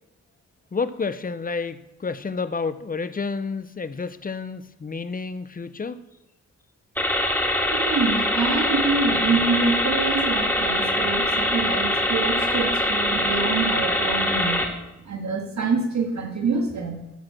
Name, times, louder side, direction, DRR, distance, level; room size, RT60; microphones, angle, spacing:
voice 1, 0.7-6.0, left 4 dB, 30° left, 12 dB, 0.7 m, -30 dB
sound 1, 7.0-14.6, left 1 dB, 5° left, 1.8 m, -23 dB
voice 2, 7.7-14.6 15.1-17.1, right 4 dB, 70° right, 2 dB, 2.0 m, -26 dB
12.5 x 4.8 x 6.1 m, 0.91 s
cardioid pair, 75°, 29 cm